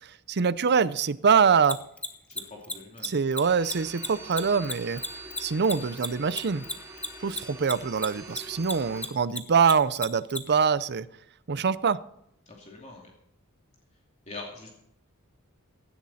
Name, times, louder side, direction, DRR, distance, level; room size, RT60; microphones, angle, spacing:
voice 1, 0.0-1.8 3.0-5.0 5.4-6.6 7.2-11.1 11.5-12.0, right 6 dB, 50° right, 17 dB, 0.6 m, -24 dB
Mechanisms, 1.6-8.4 8.6-10.4, left 2 dB, 5° left, 1.3 m, -32 dB
voice 2, 2.3-3.1 12.5-13.1 14.3-14.7, left 3 dB, 35° left, -1 dB, 2.6 m, -43 dB
sound 1, 3.4-9.1, right 2 dB, 15° right, 3.0 m, -44 dB
17.0 x 12.5 x 4.2 m, 0.78 s
head